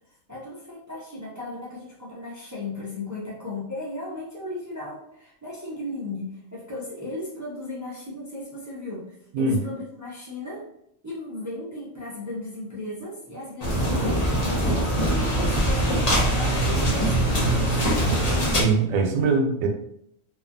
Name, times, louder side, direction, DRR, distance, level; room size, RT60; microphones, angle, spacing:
voice 1, 0.3-10.7 11.0-18.1, left 2 dB, 25° right, -6 dB, 0.3 m, -36 dB
sound 1, 13.6-18.6, right 1 dB, 35° left, 0.8 m, -22 dB
voice 2, 18.5-19.7, right 4 dB, 90° right, 4 dB, 1.0 m, -22 dB
3.0 x 2.3 x 2.5 m, 0.73 s
omnidirectional pair, 1.4 m